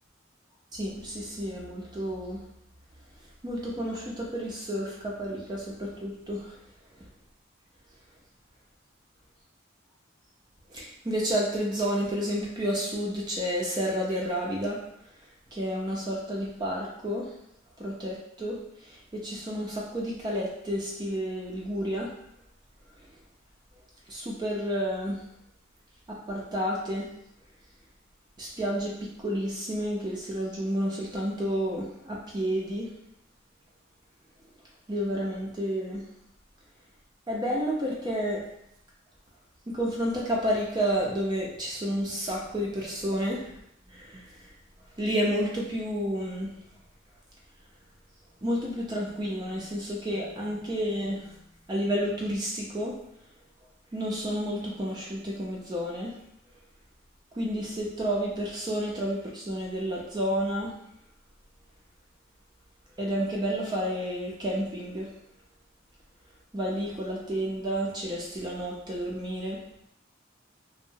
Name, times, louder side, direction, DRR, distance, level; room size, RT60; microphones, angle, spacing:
voice 1, 0.7-2.4 3.4-6.5 10.7-14.8 15.5-17.3 17.8-18.6 19.1-22.1 24.1-25.2 26.1-27.1 28.4-32.9 34.9-36.0 37.3-38.4 39.7-43.6 43.9-44.2 45.0-46.5 48.4-51.3 51.7-52.9 53.9-56.2 57.3-60.8 63.0-65.1 66.5-69.6, equal, 20° right, -3 dB, 0.4 m, -30 dB
2.8 x 2.0 x 2.6 m, 0.76 s
head